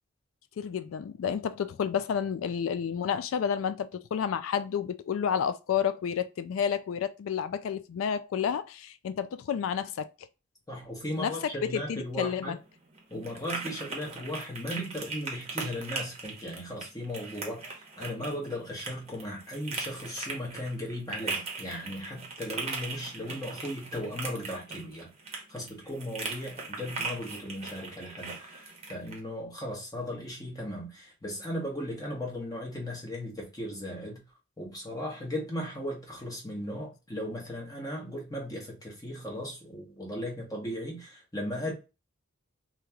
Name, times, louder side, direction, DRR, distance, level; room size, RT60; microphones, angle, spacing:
voice 1, 0.6-10.1 11.2-12.6, left 7 dB, 80° left, 0.3 m, -30 dB
voice 2, 10.7-12.5 13.1-34.2 34.6-41.7, equal, 20° left, 1.4 m, -37 dB
sound 1, 12.0-29.2, right 4 dB, 35° right, 1.0 m, -39 dB
2.9 x 2.9 x 3.5 m
head